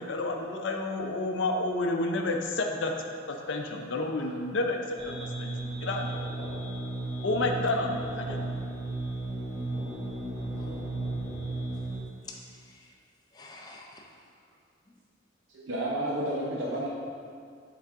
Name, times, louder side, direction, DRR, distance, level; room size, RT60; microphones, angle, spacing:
voice 1, 0.0-2.9 3.3-5.5 5.8-6.1 7.2-8.5, left 2 dB, 70° left, 3 dB, 0.5 m, -30 dB
sound 1, 5.0-12.0, right 2 dB, 25° right, 1.0 m, -34 dB
voice 2, 10.6-10.9 12.2-13.0 13.3-14.3, left 2 dB, 20° left, 0 dB, 0.5 m, -48 dB
voice 3, 15.5-16.9, right 1 dB, 80° right, -4 dB, 0.7 m, -31 dB
7.2 x 3.9 x 3.5 m, 2.3 s
head